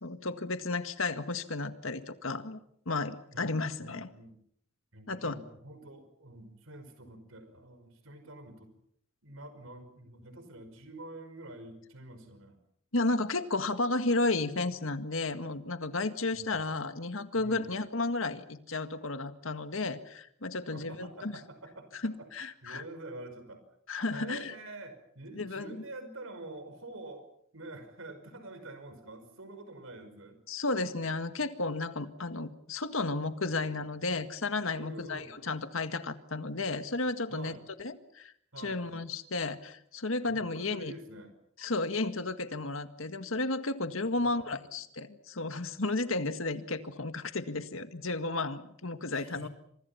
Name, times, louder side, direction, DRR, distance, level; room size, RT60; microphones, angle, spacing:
voice 1, 0.0-2.6 2.9-4.1 5.1-5.4 12.9-21.4 22.0-22.8 23.9-24.5 25.3-25.8 30.5-38.3 38.6-40.9 41.6-49.5, left 3 dB, 75° left, 9 dB, 1.8 m, -33 dB
voice 2, 3.8-4.4 4.9-8.7 9.2-12.6 16.3-16.6 17.3-17.7 20.7-22.3 22.6-23.6 24.1-27.3 27.5-30.4 34.7-35.4 37.3-37.6 38.5-38.8 40.3-41.3 44.2-44.6 49.1-49.5, right 2 dB, 75° right, 8 dB, 5.4 m, -47 dB
29.0 x 26.5 x 5.8 m, 0.68 s
head